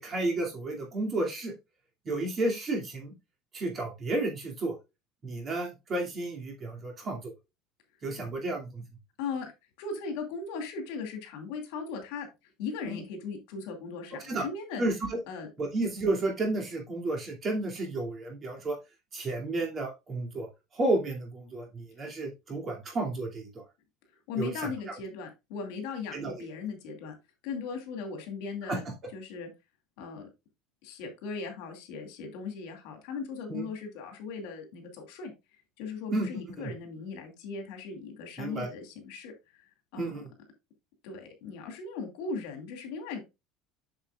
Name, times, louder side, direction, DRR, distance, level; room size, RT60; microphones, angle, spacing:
voice 1, 0.0-1.5 2.0-3.1 3.5-4.8 5.2-7.3 8.0-8.8 12.8-13.0 14.2-14.5 14.8-15.2 15.6-18.8 19.1-23.6 24.4-24.7 26.1-26.4 28.7-28.8 33.5-33.7 36.1-36.3 36.6-36.7 38.4-38.7 40.0-40.3, right 2 dB, 25° right, 0 dB, 2.5 m, -32 dB
voice 2, 9.2-9.5 9.8-12.3 12.6-14.8 15.3-15.5 24.3-27.1 27.4-28.8 29.1-29.5 30.0-30.3 30.8-35.3 35.8-39.3 39.9-40.1 41.0-43.2, left 5 dB, 75° left, 5 dB, 2.4 m, -38 dB
8.0 x 6.5 x 2.4 m, 0.24 s
cardioid pair, 160°, 0 cm